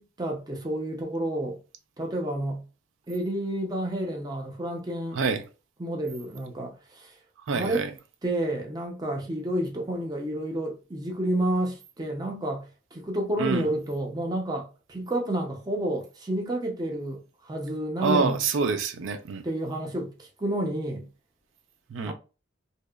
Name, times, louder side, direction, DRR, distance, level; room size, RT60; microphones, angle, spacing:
voice 1, 0.0-1.6 2.0-2.6 3.1-5.2 5.8-7.2 7.5-7.9 8.2-18.4 19.4-21.1 22.0-22.1, right 1 dB, 20° right, 0.5 m, -30 dB
voice 2, 7.5-7.9 13.4-13.7 18.0-19.4 21.9-22.1, right 4 dB, 85° right, 0.4 m, -26 dB
2.7 x 2.0 x 2.2 m
head